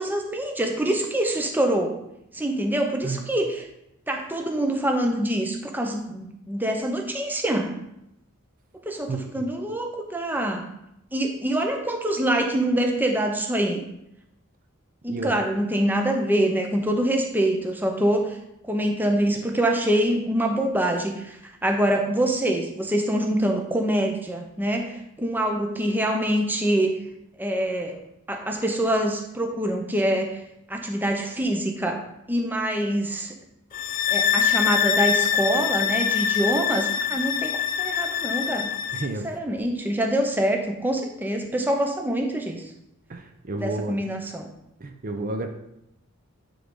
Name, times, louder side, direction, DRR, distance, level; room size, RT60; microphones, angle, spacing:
voice 1, 0.0-1.9 2.3-3.7 4.1-7.8 8.9-10.7 11.1-13.8 15.0-18.4 18.7-21.4 21.6-27.0 27.4-28.0 28.3-30.4 30.7-32.0 32.3-33.3 34.1-38.7 39.2-42.6 43.6-44.5, right 1 dB, 10° right, 3 dB, 0.7 m, -25 dB
voice 2, 9.1-9.4 15.1-15.3 38.9-39.3 43.1-44.0 44.8-45.5, right 2 dB, 40° right, 5 dB, 0.6 m, -31 dB
sound 1, 33.7-39.1, left 8 dB, 40° left, 0.3 m, -24 dB
10.0 x 3.8 x 3.7 m, 0.83 s
head